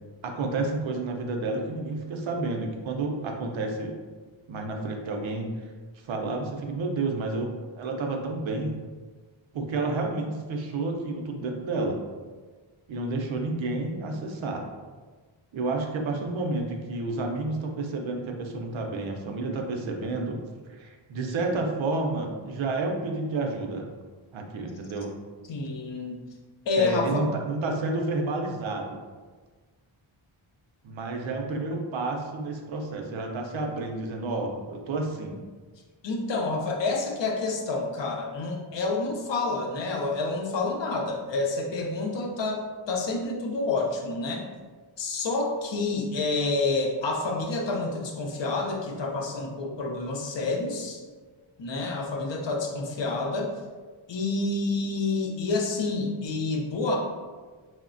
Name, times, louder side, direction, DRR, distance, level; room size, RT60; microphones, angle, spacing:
voice 1, 0.2-4.0 4.5-5.5 6.1-8.8 9.5-12.0 12.9-14.7 15.5-20.4 20.7-23.9 24.3-25.1 26.8-29.0 30.8-35.4, right 3 dB, 70° right, 2 dB, 0.5 m, -30 dB
voice 2, 25.5-26.2 26.7-27.3 36.0-44.4 45.0-51.0 51.6-53.5 54.1-57.0, left 3 dB, 65° left, 0 dB, 0.6 m, -28 dB
3.0 x 2.1 x 2.4 m, 1.4 s
wide cardioid pair, 125°, 48 cm